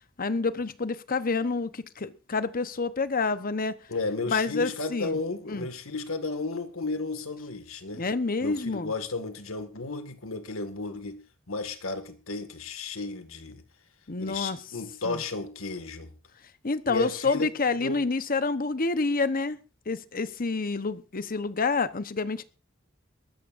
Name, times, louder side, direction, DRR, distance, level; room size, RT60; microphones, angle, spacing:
voice 1, 0.2-3.8 4.3-5.2 5.5-5.7 8.0-8.9 14.1-14.6 15.0-15.2 16.6-19.6 19.9-22.4, left 4 dB, 45° left, 0.9 m, -28 dB
voice 2, 3.9-8.1 8.4-13.6 14.2-16.1 16.9-17.5 17.8-18.0, left 3 dB, 85° left, 1.9 m, -33 dB
22.0 x 13.5 x 2.6 m
head